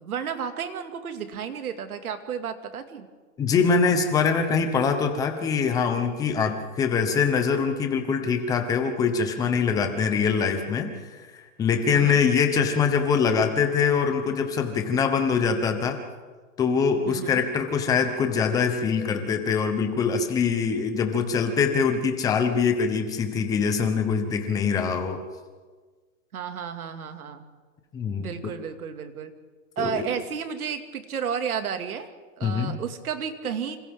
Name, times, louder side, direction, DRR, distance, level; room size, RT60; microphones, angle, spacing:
voice 1, 0.0-3.1 11.9-12.2 17.1-17.4 26.3-27.4 28.2-29.3 29.8-32.1 32.4-33.8, right 7 dB, 75° right, 7 dB, 2.4 m, -32 dB
voice 2, 3.4-16.0 16.6-25.2 27.9-28.5 29.8-30.1 32.4-32.8, left 6 dB, 10° left, 6 dB, 1.0 m, -24 dB
27.5 x 26.5 x 3.8 m, 1.4 s
hypercardioid pair, 170°, 44 cm